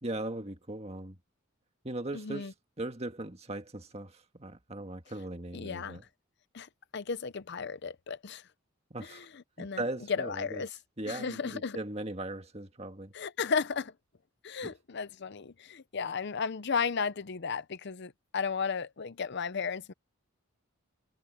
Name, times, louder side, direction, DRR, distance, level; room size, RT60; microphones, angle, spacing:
voice 1, 0.0-1.2 1.8-6.0 8.9-9.2 9.6-10.6 11.0-13.1 14.6-14.7, right 2 dB, 30° right, 1.7 m, -39 dB
voice 2, 2.1-2.5 5.5-6.0 6.5-8.4 9.0-10.7 11.1-11.8 13.1-13.9 14.4-19.9, left 5 dB, 50° left, 0.6 m, -34 dB
head